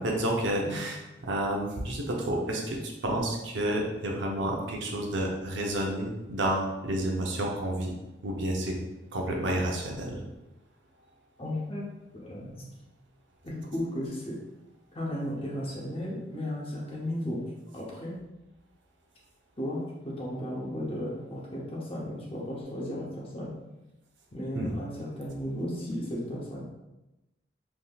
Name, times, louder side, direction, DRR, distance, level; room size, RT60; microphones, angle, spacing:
voice 1, 0.0-7.9 8.2-8.7 9.1-10.2 24.5-24.7, right 1 dB, 90° right, 0 dB, 0.6 m, -30 dB
voice 2, 11.4-11.8 12.1-12.7 13.4-14.4 14.9-17.4 17.7-18.2 19.6-23.5 24.3-26.6, equal, 30° left, -4 dB, 0.7 m, -35 dB
3.4 x 2.8 x 2.3 m, 1.0 s
head